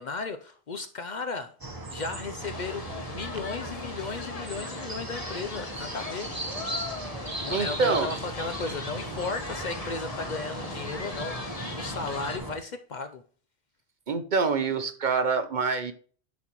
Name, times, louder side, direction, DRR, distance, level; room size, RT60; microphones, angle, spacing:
voice 1, 0.0-6.3 7.4-13.2, left 4 dB, 50° left, 0.6 m, -35 dB
sound 1, 1.6-12.6, right 2 dB, 20° right, 0.9 m, -37 dB
sound 2, 2.4-12.4, left 4 dB, 35° left, 1.0 m, -40 dB
voice 2, 7.5-8.1 14.1-15.9, right 4 dB, 50° right, 0.8 m, -26 dB
10.5 x 4.1 x 2.9 m
omnidirectional pair, 1.1 m